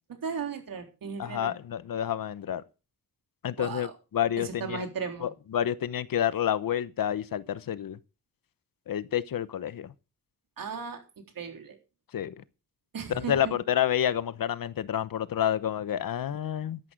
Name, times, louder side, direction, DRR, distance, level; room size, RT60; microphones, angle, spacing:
voice 1, 0.2-1.5 3.6-3.9 4.4-5.3 10.6-11.0 11.4-11.8 12.9-13.5, right 6 dB, 85° right, 3.7 m, -36 dB
voice 2, 1.2-2.6 3.4-4.8 5.2-8.0 8.9-9.9 12.1-12.4 13.1-16.8, left 10 dB, 80° left, 1.0 m, -29 dB
13.0 x 11.0 x 5.2 m
wide cardioid pair, 120°, 33 cm